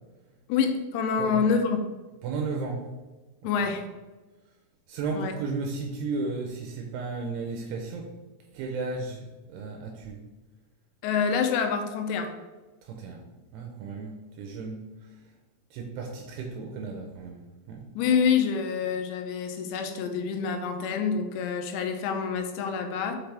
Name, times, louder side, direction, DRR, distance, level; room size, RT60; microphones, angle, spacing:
voice 1, 0.5-1.8 3.4-3.9 5.1-5.4 11.0-12.4 17.9-23.2, left 6 dB, 85° left, 6 dB, 2.8 m, -27 dB
voice 2, 2.2-2.9 4.9-8.1 8.5-10.2 12.8-13.2 13.5-14.9 15.7-17.9, right 4 dB, 80° right, 2 dB, 2.7 m, -34 dB
5.8 x 5.8 x 3.4 m, 1.2 s
omnidirectional pair, 4.9 m